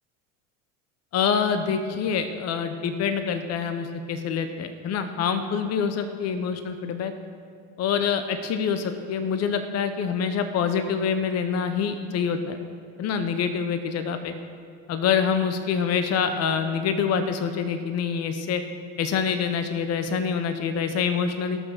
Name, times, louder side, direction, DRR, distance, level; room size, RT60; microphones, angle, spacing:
voice 1, 1.1-7.1 7.8-12.6 13.0-14.3 14.9-18.6 19.0-21.6, left 6 dB, 40° left, 8 dB, 0.9 m, -26 dB
18.0 x 6.3 x 6.7 m, 2.4 s
supercardioid pair, 110°, 40 cm